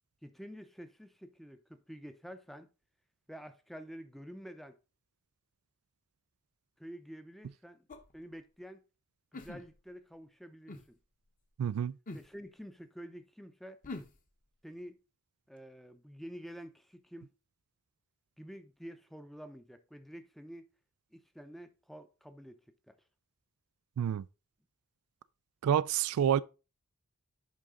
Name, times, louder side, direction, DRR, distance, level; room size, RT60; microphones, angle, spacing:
voice 1, 0.2-2.7 3.3-4.8 6.8-7.9 8.1-8.8 9.3-11.0 12.1-13.8 14.6-15.0 15.5-17.3 18.4-20.7 21.1-23.0, equal, ahead, 0.6 m, -49 dB
sound 1, 7.9-8.1 9.3-10.0 10.7-10.8 12.1-12.3 13.8-14.2, left 2 dB, 40° left, 1.1 m, -44 dB
voice 2, 11.6-11.9 24.0-24.2 25.6-26.4, right 9 dB, 70° right, 0.3 m, -28 dB
10.5 x 3.7 x 3.7 m
head